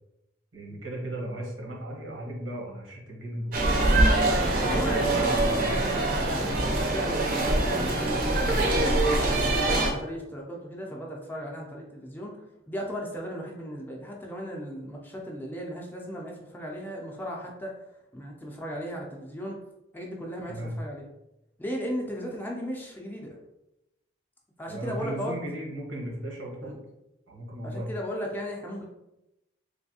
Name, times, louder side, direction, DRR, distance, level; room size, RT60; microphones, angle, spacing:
voice 1, 0.5-3.9 4.6-5.9 20.5-20.7 24.7-26.8 27.3-27.9, right 1 dB, 90° right, -1 dB, 1.0 m, -36 dB
sound 1, 3.5-9.9, right 2 dB, 45° right, 0.5 m, -24 dB
voice 2, 4.6-17.7 18.1-19.6 19.9-21.1 21.6-23.4 24.6-25.4 26.6-26.8 27.6-28.9, equal, 10° left, -2 dB, 0.4 m, -36 dB
3.3 x 2.6 x 2.7 m, 0.91 s
head